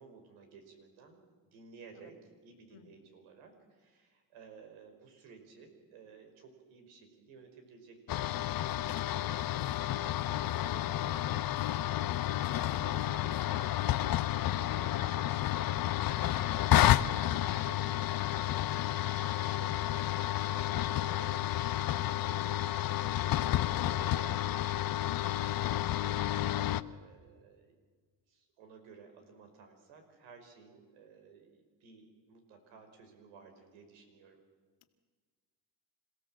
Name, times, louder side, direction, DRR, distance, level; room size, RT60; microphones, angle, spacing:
voice 1, 0.0-11.6 11.9-25.8 26.0-27.7 28.3-34.4, right 5 dB, 80° right, 5 dB, 5.4 m, -56 dB
voice 2, 2.7-2.9 18.9-19.0 34.8-34.9, left 13 dB, 70° left, 7 dB, 2.1 m, -56 dB
sound 1, 8.1-26.8, left 13 dB, 45° left, 0.8 m, -31 dB
27.0 x 16.5 x 7.6 m, 1.5 s
supercardioid pair, 90°, 48 cm